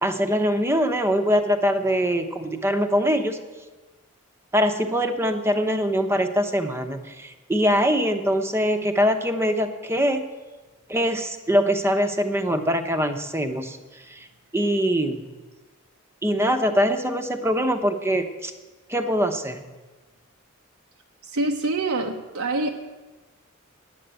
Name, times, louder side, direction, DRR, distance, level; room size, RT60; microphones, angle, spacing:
voice 1, 0.0-3.4 4.5-10.3 10.9-13.8 14.1-14.3 14.5-15.3 16.2-18.5 18.9-19.6, equal, 10° right, 7 dB, 0.8 m, -23 dB
voice 2, 21.2-22.7, right 2 dB, 85° right, 2 dB, 0.8 m, -25 dB
9.7 x 8.1 x 8.9 m, 1.2 s
head